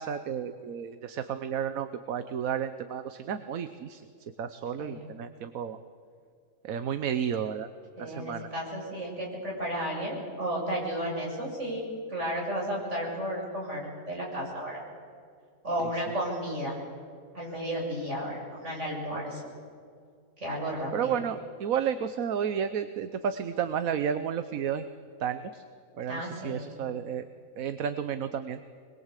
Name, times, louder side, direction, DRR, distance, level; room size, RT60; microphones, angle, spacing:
voice 1, 0.0-4.0 4.4-5.8 6.6-7.7 8.0-8.5 20.9-24.8 25.2-25.6 26.0-27.2 27.6-28.6, right 8 dB, 75° right, 10 dB, 1.3 m, -32 dB
voice 2, 8.0-14.8 15.6-16.8 17.3-19.4 20.4-21.2 26.1-26.8, equal, 55° right, -3 dB, 7.8 m, -33 dB
24.5 x 22.0 x 8.3 m, 2.3 s
omnidirectional pair, 1.5 m